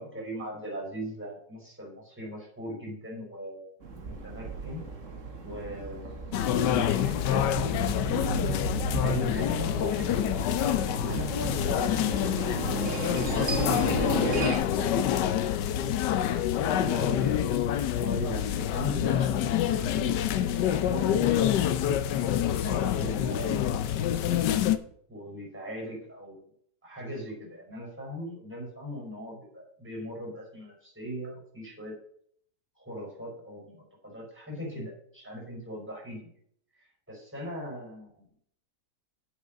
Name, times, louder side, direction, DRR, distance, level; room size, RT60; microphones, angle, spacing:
voice 1, 0.0-3.7 4.0-4.8 5.4-6.3 6.6-8.6 8.9-10.3 11.0-15.3 16.2-21.2 22.6-24.4 25.1-26.4 26.8-31.9 32.7-36.3 36.8-38.2, equal, 5° right, -2 dB, 4.9 m, -39 dB
sound 1, 3.8-14.6, right 3 dB, 50° right, 1.7 m, -34 dB
sound 2, 6.3-24.8, left 10 dB, 85° left, 1.3 m, -27 dB
9.2 x 7.2 x 5.2 m, 0.64 s
omnidirectional pair, 1.8 m